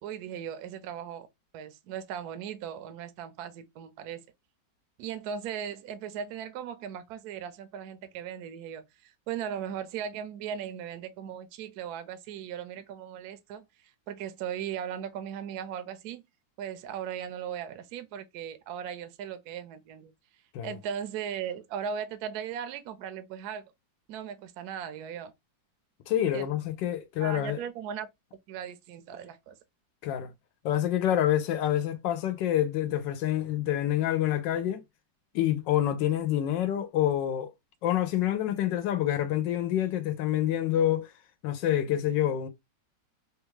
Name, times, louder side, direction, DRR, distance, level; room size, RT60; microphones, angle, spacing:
voice 1, 0.0-1.3 1.5-4.2 5.0-13.7 14.1-16.2 16.6-20.1 20.6-23.6 24.1-25.3 26.2-26.5 27.2-28.1 28.5-29.5, right 8 dB, 70° right, 0.9 m, -38 dB
voice 2, 26.1-27.6 30.0-30.3 30.6-34.8 35.3-37.5 37.8-41.1 41.4-42.5, left 11 dB, 80° left, 1.2 m, -27 dB
3.4 x 2.3 x 3.1 m
omnidirectional pair, 2.0 m